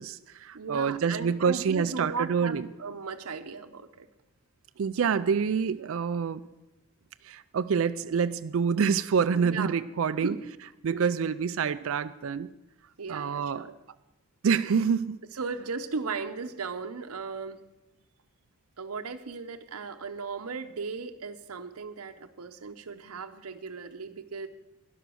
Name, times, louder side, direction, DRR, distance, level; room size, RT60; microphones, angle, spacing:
voice 1, 0.0-2.7 4.8-6.4 7.2-10.3 10.8-12.5 13.1-13.6 14.4-15.2, right 6 dB, 65° right, 11 dB, 0.4 m, -27 dB
voice 2, 0.5-4.1 9.3-9.7 10.2-10.4 10.9-11.1 11.6-11.8 13.0-13.8 15.3-17.6 18.8-24.5, right 4 dB, 85° right, 7 dB, 0.8 m, -36 dB
12.0 x 11.0 x 6.3 m, 0.96 s
head